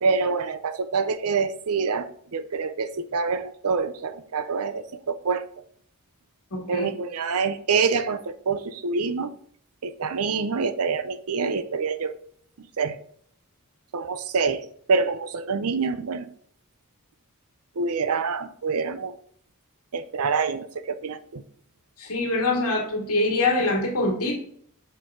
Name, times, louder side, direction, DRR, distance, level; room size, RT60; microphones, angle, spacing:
voice 1, 0.0-5.4 6.7-9.3 9.8-12.1 12.6-13.0 13.9-14.6 14.9-16.3 17.8-19.1 19.9-21.4, right 5 dB, 75° right, 12 dB, 0.6 m, -26 dB
voice 2, 6.5-6.9 22.0-24.3, left 2 dB, 90° left, 0 dB, 2.1 m, -24 dB
6.5 x 4.7 x 3.6 m, 0.62 s
head